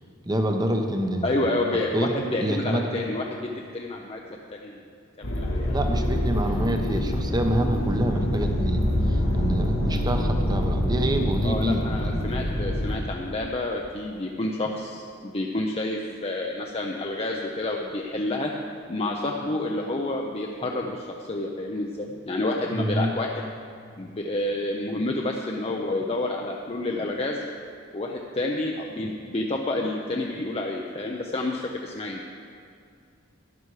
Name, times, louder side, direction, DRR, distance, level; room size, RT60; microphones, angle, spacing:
voice 1, 0.2-1.4 1.7-2.9 5.7-12.2 22.7-23.1, right 1 dB, 20° right, 4 dB, 0.9 m, -27 dB
voice 2, 1.2-4.2 4.5-4.8 5.2-5.8 6.4-6.5 11.4-18.5 18.9-23.3 24.0-27.4 27.9-32.2, left 2 dB, 30° left, 0 dB, 0.6 m, -29 dB
sound 1, 5.2-13.0, equal, 75° left, 1.9 m, -25 dB
12.0 x 10.5 x 4.8 m, 2.4 s
head